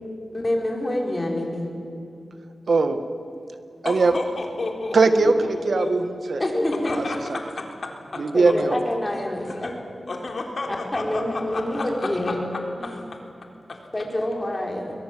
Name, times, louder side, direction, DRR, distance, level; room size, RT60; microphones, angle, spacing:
voice 1, 0.3-1.7 6.4-6.9 8.3-9.7 10.9-12.4 12.8-12.9 13.9-14.9, left 1 dB, 30° left, 0 dB, 4.9 m, -26 dB
voice 2, 2.7-3.0 3.8-4.1 4.9-6.4 8.2-8.7, right 3 dB, 75° right, 9 dB, 1.5 m, -20 dB
voice 3, 3.8-5.0 5.5-5.9 6.8-8.8 9.5-9.7 10.1-12.9 13.7-13.8, left 3 dB, 65° left, 2 dB, 3.6 m, -32 dB
22.0 x 21.5 x 7.6 m, 2.6 s
wide cardioid pair, 75°, 0 cm